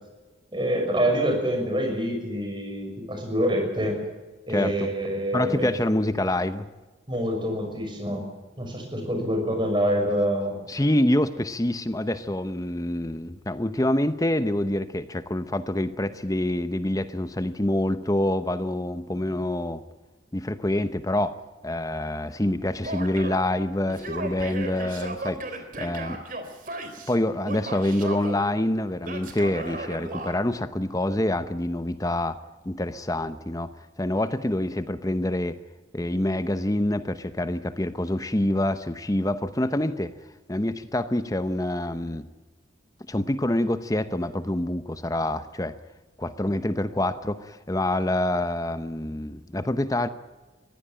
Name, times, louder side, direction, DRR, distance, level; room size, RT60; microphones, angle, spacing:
voice 1, 0.5-4.0 4.5-5.7 7.1-8.2 8.6-10.5, equal, 25° right, 3 dB, 6.2 m, -26 dB
voice 2, 4.5-4.9 5.3-6.7 10.7-19.8 20.3-26.2 27.1-32.4 32.7-33.7 34.0-35.6 35.9-40.1 40.5-42.3 43.1-45.8 46.2-50.1, left 1 dB, 20° left, 12 dB, 0.8 m, -26 dB
Male speech man speaking / Yell, 22.8-23.5 23.9-27.2 27.4-28.4 29.0-30.4, right 2 dB, 45° right, 3.4 m, -35 dB
22.5 x 16.0 x 9.0 m, 1.2 s
head